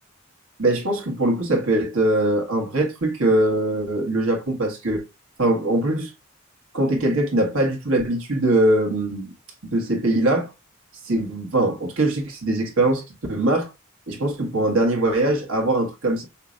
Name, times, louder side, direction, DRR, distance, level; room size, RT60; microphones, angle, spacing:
voice 1, 0.6-5.0 5.4-6.1 6.7-9.3 9.6-10.5 11.0-13.0 13.3-13.7 14.1-16.2, right 1 dB, 70° right, 1.5 m, -22 dB
5.7 x 2.8 x 2.5 m
head